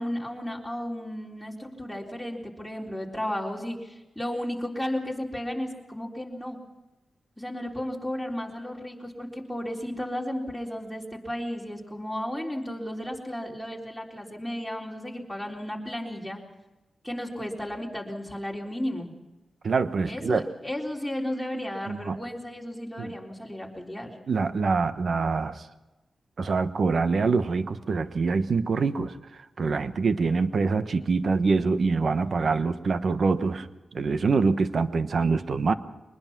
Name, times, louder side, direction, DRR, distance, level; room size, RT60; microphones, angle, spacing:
voice 1, 0.0-6.6 7.4-16.4 17.0-19.1 20.1-24.2, left 1 dB, ahead, -2 dB, 3.9 m, -34 dB
voice 2, 19.6-20.4 21.9-22.2 23.0-23.1 24.3-25.7 26.4-29.1 29.6-35.7, right 4 dB, 60° right, 11 dB, 1.1 m, -25 dB
23.0 x 20.5 x 6.0 m, 1.1 s
wide cardioid pair, 95°, 0 cm